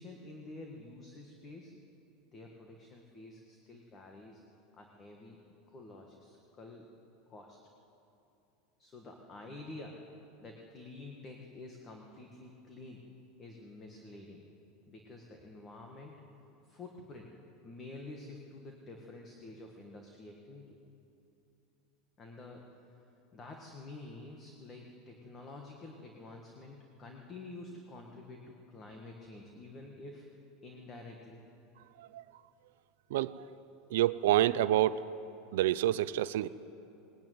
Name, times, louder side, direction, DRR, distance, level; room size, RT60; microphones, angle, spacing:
voice 1, 0.0-1.7 2.3-4.4 4.7-6.9 7.3-7.6 8.8-10.0 10.4-13.0 13.4-14.4 14.9-16.2 16.6-17.3 17.6-20.8 22.2-22.7 23.3-30.3 30.6-31.4, left 2 dB, 20° left, 1 dB, 1.6 m, -49 dB
voice 2, 33.1-33.4 33.9-35.0 35.5-36.5, right 13 dB, 75° right, 15 dB, 0.6 m, -28 dB
20.0 x 19.0 x 9.4 m, 2.8 s
supercardioid pair, 175°, 0 cm